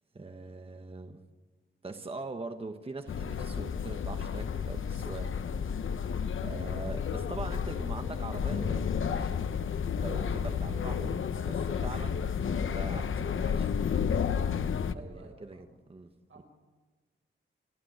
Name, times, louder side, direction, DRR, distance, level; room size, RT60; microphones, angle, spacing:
voice 1, 0.1-1.3 1.8-6.0 6.4-9.5 10.0-12.2 12.6-13.9 14.9-16.1, right 3 dB, 30° right, 6 dB, 1.2 m, -42 dB
sound 1, 3.1-14.9, left 7 dB, 75° left, 0.8 m, -31 dB
voice 2, 14.9-15.8 16.3-16.4, right 4 dB, 85° right, 2 dB, 6.6 m, -53 dB
29.5 x 14.5 x 8.0 m, 1.3 s
wide cardioid pair, 110°, 21 cm